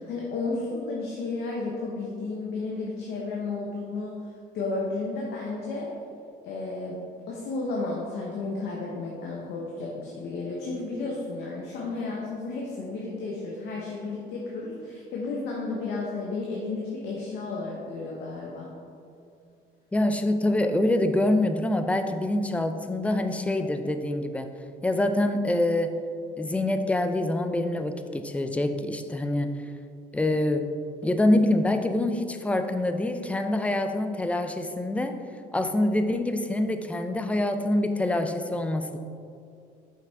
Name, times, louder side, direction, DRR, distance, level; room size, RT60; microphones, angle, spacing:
voice 1, 0.0-5.9 6.4-18.8, left 3 dB, 75° left, -3 dB, 0.9 m, -33 dB
voice 2, 19.9-24.5 24.8-26.0 26.4-29.5 30.1-30.7 31.0-35.2 35.5-39.0, left 1 dB, 10° left, 7 dB, 0.4 m, -25 dB
5.8 x 5.7 x 3.4 m, 2.4 s
cardioid pair, 110°, 17 cm